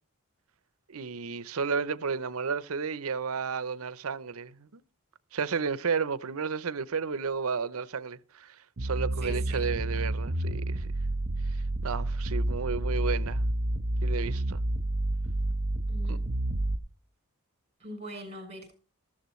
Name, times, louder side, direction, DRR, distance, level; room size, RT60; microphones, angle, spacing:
voice 1, 0.9-4.8 5.3-10.9 11.8-13.4 14.0-14.6 16.1-16.2, right 5 dB, 75° right, 0.7 m, -32 dB
sound 1, 8.8-16.8, right 1 dB, 60° right, 1.1 m, -29 dB
voice 2, 9.2-9.7 15.9-16.1 17.8-18.7, right 2 dB, 30° right, 6.3 m, -42 dB
14.0 x 14.0 x 3.1 m
head